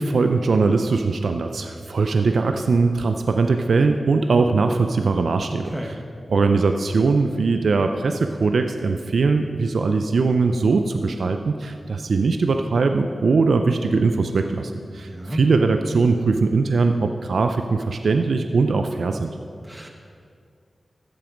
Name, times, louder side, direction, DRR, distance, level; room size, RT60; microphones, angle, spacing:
voice 1, 0.0-5.7 6.3-19.3, right 4 dB, 80° right, 6 dB, 0.5 m, -21 dB
voice 2, 15.0-15.4 19.6-19.9, right 1 dB, 15° right, 2 dB, 1.2 m, -32 dB
13.5 x 7.6 x 5.1 m, 2.3 s
cardioid pair, 40°, 0 cm